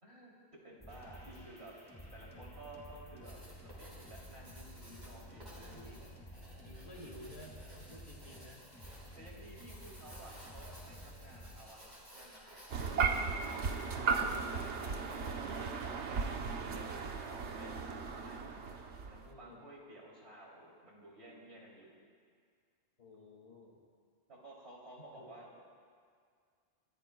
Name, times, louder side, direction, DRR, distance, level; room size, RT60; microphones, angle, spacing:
voice 1, 0.0-0.3 0.6-1.8 2.1-5.9 9.2-13.6 13.9-18.5 19.0-21.9 24.3-25.6, right 1 dB, 70° right, -4 dB, 3.4 m, -54 dB
sound 1, 0.8-11.6, equal, 10° left, 4.4 m, -52 dB
Writing, 3.2-15.5, equal, 40° right, 5.1 m, -56 dB
voice 2, 5.6-6.2 6.6-8.7 14.3-14.7 19.2-19.6 23.0-23.8 25.1-25.3, left 1 dB, 65° left, 0 dB, 2.4 m, -54 dB
sound 2, 12.7-19.3, right 5 dB, 90° right, 1.2 m, -36 dB
29.0 x 14.5 x 2.3 m, 2.1 s
omnidirectional pair, 1.1 m